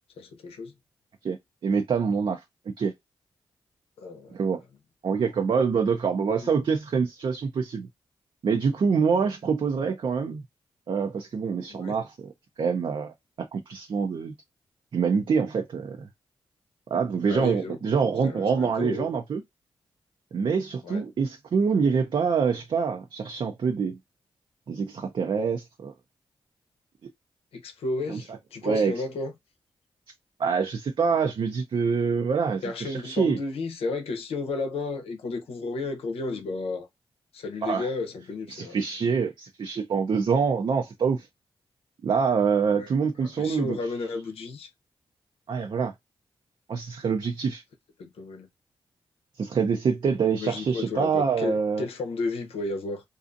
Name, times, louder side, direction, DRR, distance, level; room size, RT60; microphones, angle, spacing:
voice 1, 0.2-0.7 4.0-4.4 11.7-12.0 17.3-17.8 18.2-19.1 20.8-21.0 27.5-29.3 32.6-36.9 37.3-38.8 42.8-42.9 43.4-44.7 48.0-48.5 50.3-53.0, left 3 dB, 85° left, 0.7 m, -33 dB
voice 2, 1.6-2.4 2.8-2.9 4.3-4.6 5.0-7.9 8.4-10.4 10.9-12.3 12.6-14.3 14.9-16.1 16.9-19.4 20.3-24.0 24.7-25.9 28.1-28.2 28.6-28.9 30.4-33.4 37.6-37.9 38.5-41.3 42.0-43.8 45.5-45.9 46.7-47.6 49.4-51.9, right 5 dB, 55° right, 0.5 m, -25 dB
2.6 x 2.4 x 2.5 m
cardioid pair, 60°, 10 cm